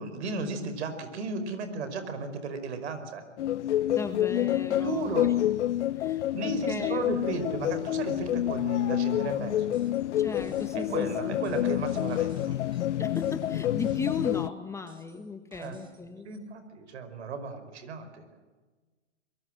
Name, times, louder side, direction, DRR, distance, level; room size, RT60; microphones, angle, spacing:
voice 1, 0.0-3.2 4.7-5.3 6.3-9.8 10.7-12.5 15.6-15.8 16.2-18.2, right 3 dB, 65° right, 9 dB, 5.0 m, -34 dB
sound 1, 3.4-14.5, left 12 dB, 70° left, 0.7 m, -28 dB
voice 2, 3.9-5.3 6.0-6.3 6.7-7.1 10.2-10.9 11.3-11.4 13.0-16.3, left 4 dB, 10° left, 7 dB, 1.2 m, -36 dB
sound 2, 9.7-10.0 10.3-14.4 14.9-16.0 16.3-16.4, equal, 15° right, 4.3 m, -56 dB
24.5 x 22.0 x 7.7 m, 1.3 s
hypercardioid pair, 140°, 36 cm